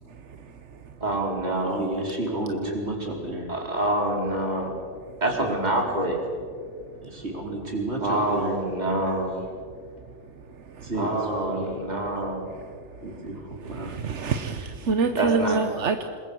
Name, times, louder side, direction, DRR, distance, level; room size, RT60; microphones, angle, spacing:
voice 1, 1.0-1.8 3.5-4.7 5.2-6.3 8.0-9.4 11.0-12.5 15.2-15.6, right 1 dB, 40° right, 1 dB, 3.1 m, -26 dB
voice 2, 1.6-3.5 5.3-5.8 7.0-8.6 9.1-9.2 10.8-11.8 13.0-14.0, right 1 dB, 70° right, 0 dB, 4.8 m, -32 dB
voice 3, 13.7-16.0, right 4 dB, 90° right, 7 dB, 1.3 m, -26 dB
27.0 x 21.0 x 6.3 m, 2.2 s
omnidirectional pair, 1.2 m